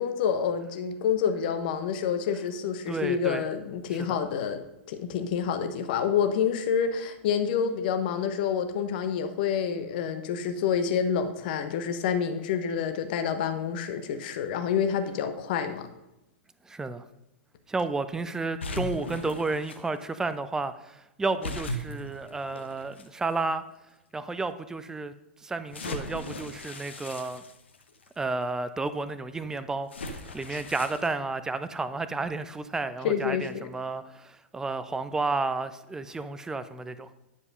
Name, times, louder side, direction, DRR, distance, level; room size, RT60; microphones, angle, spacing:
voice 1, 0.0-4.6 4.9-15.9 30.5-30.6 33.0-33.7, left 7 dB, 45° left, 10 dB, 1.0 m, -28 dB
voice 2, 2.9-3.5 16.6-17.0 17.7-23.6 24.1-25.1 25.4-27.4 28.2-37.1, right 3 dB, 10° right, 12 dB, 0.5 m, -32 dB
sound 1, 18.6-19.8 21.4-23.1 23.8-23.9 25.7-28.1 29.9-31.1, left 2 dB, 70° left, 1.0 m, -37 dB
9.8 x 5.3 x 5.3 m, 0.92 s
figure-of-eight pair, 100°, 7 cm